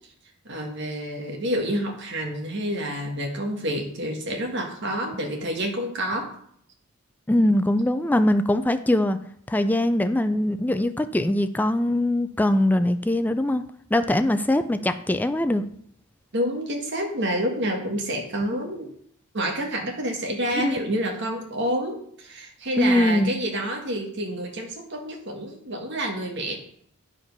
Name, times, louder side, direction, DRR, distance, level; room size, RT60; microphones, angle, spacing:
voice 1, 0.4-6.3 16.3-18.9 19.3-26.6, right 1 dB, 55° right, 1 dB, 1.4 m, -28 dB
voice 2, 7.3-9.2 9.5-13.6 13.9-15.6 18.5-18.6 20.6-20.8 22.8-23.3, left 1 dB, 10° left, 10 dB, 0.3 m, -22 dB
10.5 x 5.0 x 5.3 m, 0.66 s
head